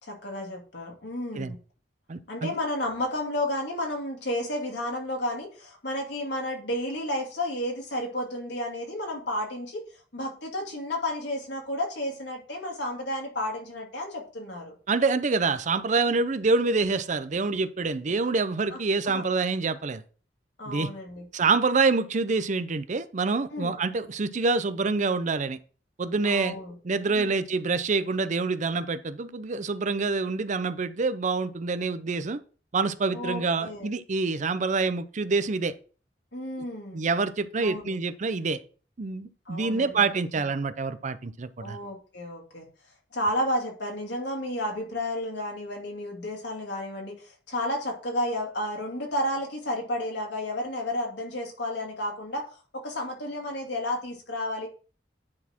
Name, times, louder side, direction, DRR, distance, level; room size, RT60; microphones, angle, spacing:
voice 1, 0.0-1.6 2.3-14.7 16.1-16.2 18.7-18.8 19.1-19.2 20.6-21.3 23.5-23.8 26.2-26.7 27.1-27.4 33.1-33.9 36.3-37.0 37.6-37.9 39.5-40.1 40.4-40.5 41.6-42.7 43.1-54.7, left 1 dB, 75° left, 2.5 m, -32 dB
voice 2, 2.1-2.5 14.9-20.0 20.7-20.9 21.3-25.6 26.0-26.6 26.8-32.4 32.7-35.7 36.9-38.6 39.0-41.8, right 4 dB, 45° right, 0.6 m, -26 dB
9.7 x 4.2 x 4.4 m
head